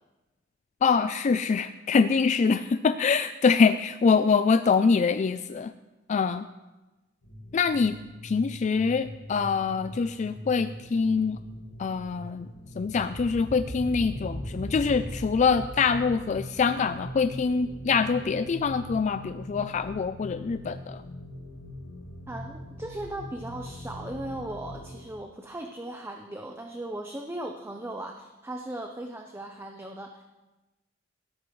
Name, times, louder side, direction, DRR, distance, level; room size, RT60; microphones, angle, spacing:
voice 1, 0.8-5.7 6.1-6.5 7.5-8.0 8.2-11.4 11.8-12.5 12.8-21.0, left 5 dB, 40° left, 11 dB, 0.3 m, -24 dB
sound 1, 7.2-25.0, left 1 dB, 85° left, 1.9 m, -40 dB
voice 2, 22.3-30.2, right 1 dB, 15° right, 3 dB, 0.7 m, -38 dB
17.5 x 13.5 x 3.2 m, 1.1 s
head